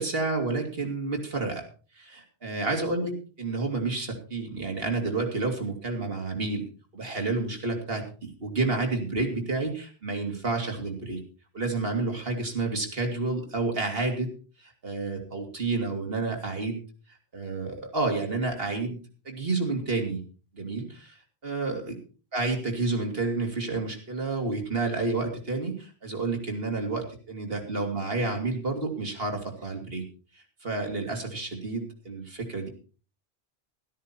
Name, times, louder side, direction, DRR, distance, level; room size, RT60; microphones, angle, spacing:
voice 1, 0.0-1.6 1.9-3.1 3.4-6.6 6.9-11.2 11.5-14.3 14.6-16.8 17.3-19.0 19.2-20.2 20.5-21.2 21.4-22.0 22.3-30.0 30.6-32.7, right 3 dB, 65° right, 3 dB, 2.8 m, -30 dB
13.0 x 12.5 x 4.4 m, 0.37 s
omnidirectional pair, 1.1 m